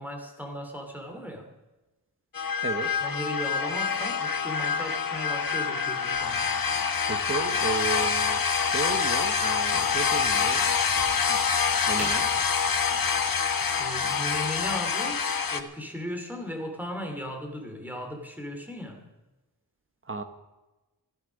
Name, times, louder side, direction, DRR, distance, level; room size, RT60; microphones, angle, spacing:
voice 1, 0.0-1.5 3.0-6.9 13.8-15.2 15.5-19.1, equal, 5° right, 4 dB, 2.7 m, -36 dB
sound 1, 2.3-15.6, left 6 dB, 55° left, 1.0 m, -26 dB
voice 2, 2.6-2.9 7.1-8.4 8.7-10.7 11.3-11.4 11.9-12.3 20.1-20.2, right 4 dB, 30° right, 8 dB, 1.0 m, -33 dB
Crack, 9.6-15.1, right 1 dB, 85° right, 6.6 m, -45 dB
14.5 x 13.5 x 6.2 m, 1.1 s
wide cardioid pair, 130°, 41 cm